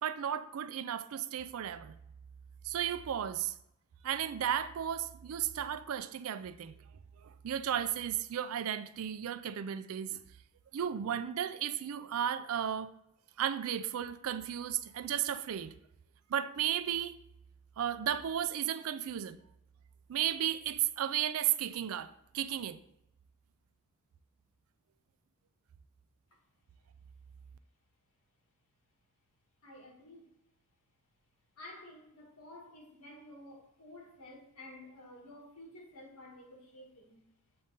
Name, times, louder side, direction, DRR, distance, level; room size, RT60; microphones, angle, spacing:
voice 1, 0.0-2.0 2.6-3.6 4.0-6.7 7.2-10.2 10.7-12.9 13.4-15.7 16.3-17.2 17.8-19.4 20.1-22.8, right 10 dB, 75° right, 0.4 m, -34 dB
voice 2, 29.6-30.3 31.6-37.2, left 1 dB, 80° left, 1.6 m, -52 dB
7.7 x 3.6 x 4.0 m
head